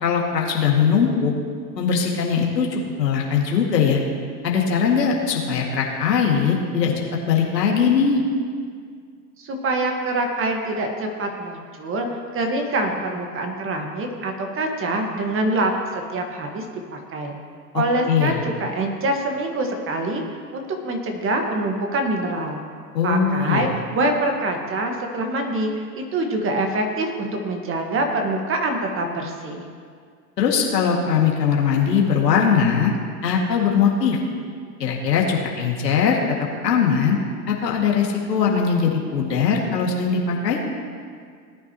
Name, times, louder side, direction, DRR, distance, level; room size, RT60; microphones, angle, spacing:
voice 1, 0.0-1.3 1.7-4.0 4.4-8.2 18.1-18.4 22.9-23.6 30.4-32.9 33.2-34.2 34.8-36.2 36.6-37.2 37.5-40.6, left 6 dB, 90° left, -1 dB, 2.3 m, -20 dB
voice 2, 9.4-12.1 12.3-15.7 16.1-16.6 16.9-17.3 17.7-20.2 20.5-22.6 23.0-25.7 26.0-29.6, right 2 dB, 25° right, 3 dB, 1.6 m, -25 dB
18.5 x 9.6 x 3.0 m, 2.1 s
hypercardioid pair, 110°, 48 cm